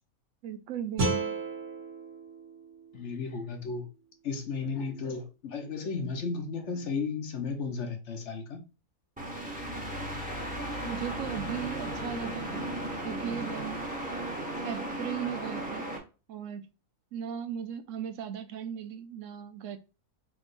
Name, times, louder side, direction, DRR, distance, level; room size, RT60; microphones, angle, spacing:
voice 1, 0.4-1.4 10.8-12.7 13.0-13.8 14.6-15.9 16.3-16.6 17.1-19.8, right 9 dB, 65° right, 0.9 m, -37 dB
sound 1, 1.0-4.1, right 3 dB, 80° right, 1.7 m, -34 dB
voice 2, 2.9-3.9 4.2-8.7, left 4 dB, 55° left, 1.0 m, -34 dB
sound 2, 9.2-16.0, right 1 dB, 5° right, 1.2 m, -35 dB
4.9 x 3.7 x 2.5 m
omnidirectional pair, 1.6 m